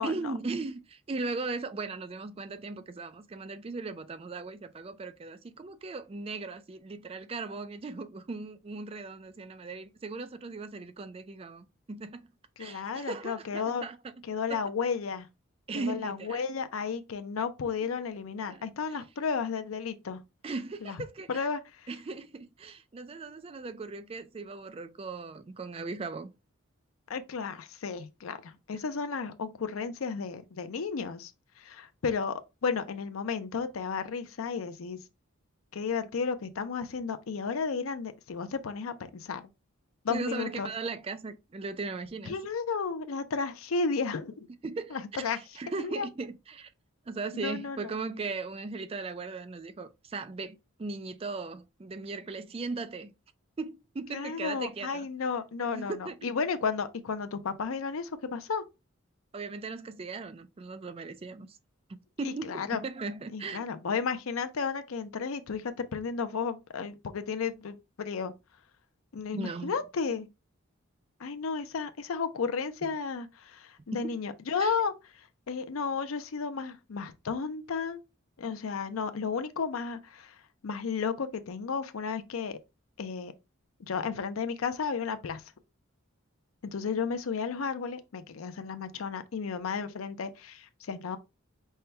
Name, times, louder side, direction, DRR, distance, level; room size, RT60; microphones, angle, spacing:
voice 1, 0.0-12.3 12.6-14.0 14.5-14.6 15.7-16.5 18.5-18.7 20.4-21.4 21.9-26.3 40.1-42.4 44.6-46.7 47.1-53.1 53.6-55.1 55.7-56.2 59.3-61.6 61.9-63.7 69.3-69.7 73.9-74.2 74.6-74.8, right 3 dB, 30° right, 0.3 m, -38 dB
voice 2, 12.6-13.9 14.3-15.3 15.8-20.2 20.8-21.0 21.3-21.9 27.1-31.3 31.6-35.0 35.7-39.4 40.0-40.7 42.3-44.5 44.9-45.4 45.8-46.1 47.3-47.9 54.1-58.6 62.2-62.8 63.3-68.3 69.1-70.3 71.2-78.0 78.4-80.3 80.6-82.6 83.0-83.3 83.8-85.4 86.6-91.2, left 5 dB, 85° left, 0.5 m, -33 dB
5.5 x 2.2 x 3.2 m
head